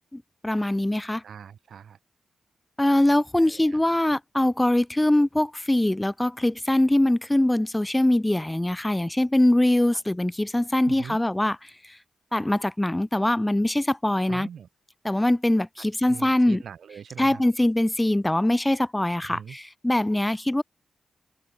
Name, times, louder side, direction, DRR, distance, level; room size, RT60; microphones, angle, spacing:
voice 1, 0.1-1.2 2.8-12.0 12.3-14.5 15.0-16.6 17.2-20.6, left 1 dB, 15° left, 0.9 m, -23 dB
voice 2, 1.2-2.0 3.4-3.8 9.9-10.0 10.9-11.2 14.3-14.7 15.8-17.4 19.3-19.6, right 8 dB, 75° right, 7.0 m, -42 dB
supercardioid pair, 50°, 0 cm